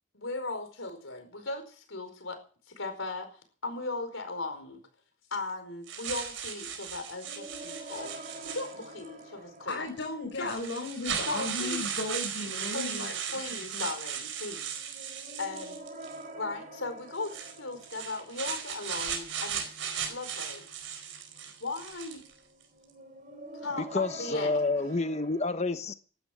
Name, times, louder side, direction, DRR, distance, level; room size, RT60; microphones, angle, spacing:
voice 1, 0.1-2.4 2.7-4.8 5.3-8.1 8.4-9.9 10.4-10.5 11.3-11.8 12.6-15.1 15.4-15.8 16.3-19.7 20.1-20.6 21.6-22.2 23.5-24.5, left 3 dB, 90° left, 7 dB, 4.8 m, -37 dB
sound 1, 5.9-9.1 9.9-10.0 10.4-16.2 17.2-22.3, right 8 dB, 80° right, 4.7 m, -37 dB
sound 2, 7.2-25.4, right 2 dB, 45° right, 3.5 m, -48 dB
voice 2, 9.7-13.1 13.7-13.9, left 2 dB, 70° left, 0 dB, 4.7 m, -35 dB
voice 3, 23.8-25.9, left 3 dB, 35° left, 10 dB, 1.0 m, -29 dB
16.5 x 12.0 x 6.2 m, 0.42 s
head